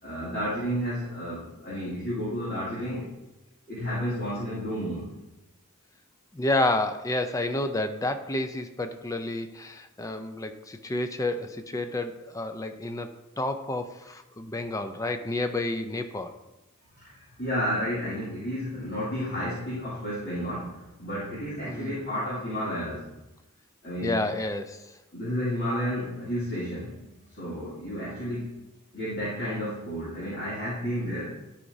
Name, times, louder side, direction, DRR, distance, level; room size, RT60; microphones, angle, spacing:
voice 1, 0.0-3.1 3.7-5.1 16.9-23.1 23.8-24.2 25.1-27.1 27.3-28.5 28.9-31.4, equal, 50° left, -11 dB, 2.4 m, -31 dB
voice 2, 6.3-13.1 13.4-16.4 21.7-22.0 24.0-24.9, left 2 dB, 15° left, 8 dB, 0.4 m, -30 dB
11.5 x 5.0 x 2.7 m, 0.97 s
head